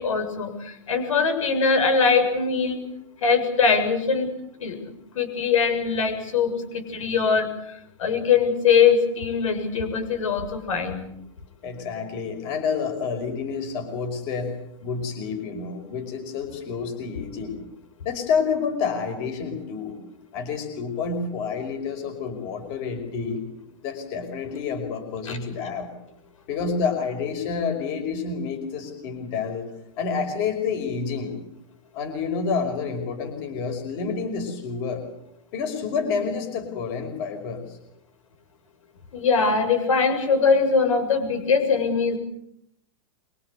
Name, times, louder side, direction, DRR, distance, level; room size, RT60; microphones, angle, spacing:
voice 1, 0.0-2.8 3.2-4.3 4.6-7.5 8.0-11.1 25.3-25.4 39.1-42.2, left 5 dB, 85° left, 8 dB, 7.3 m, -22 dB
voice 2, 11.6-14.5 14.8-17.6 18.0-20.0 20.3-23.4 23.8-25.9 26.5-29.7 30.0-31.3 31.9-35.0 35.5-37.8, left 5 dB, 35° left, 6 dB, 5.4 m, -29 dB
25.5 x 24.0 x 8.2 m, 0.76 s
supercardioid pair, 170°, 16 cm